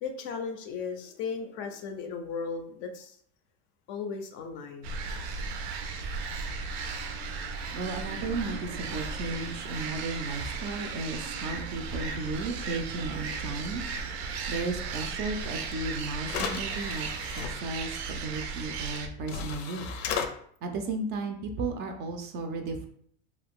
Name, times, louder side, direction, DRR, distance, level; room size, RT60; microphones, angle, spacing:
voice 1, 0.0-3.2 3.9-5.2, left 5 dB, 40° left, 5 dB, 0.4 m, -36 dB
sound 1, 4.8-19.1, right 4 dB, 85° right, 0.6 m, -36 dB
voice 2, 7.7-13.8 14.5-17.1 17.5-19.9 20.6-22.9, right 3 dB, 35° right, 5 dB, 0.4 m, -34 dB
sound 2, 15.7-15.8 16.2-17.5 18.9-19.0 19.3-20.3, left 7 dB, 90° left, 0.5 m, -34 dB
2.6 x 2.4 x 3.5 m, 0.62 s
supercardioid pair, 140°, 31 cm